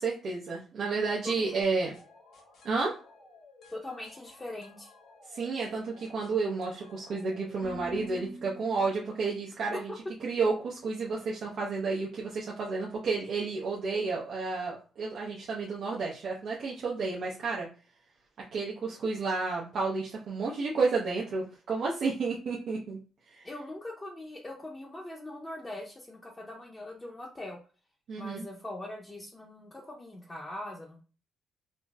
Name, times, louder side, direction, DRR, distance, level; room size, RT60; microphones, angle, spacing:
voice 1, 0.0-1.9 2.6-2.9 5.3-9.9 10.2-17.7 18.5-23.0 23.3-23.5 28.1-28.4, right 4 dB, 60° right, -3 dB, 0.6 m, -31 dB
sound 1, 1.6-9.4, equal, 75° left, 1.1 m, -50 dB
voice 2, 3.7-4.9 9.7-9.8 23.4-27.6 28.2-31.0, left 1 dB, 15° left, -3 dB, 0.6 m, -41 dB
3.9 x 2.0 x 2.3 m, 0.36 s
cardioid pair, 90°, 0 cm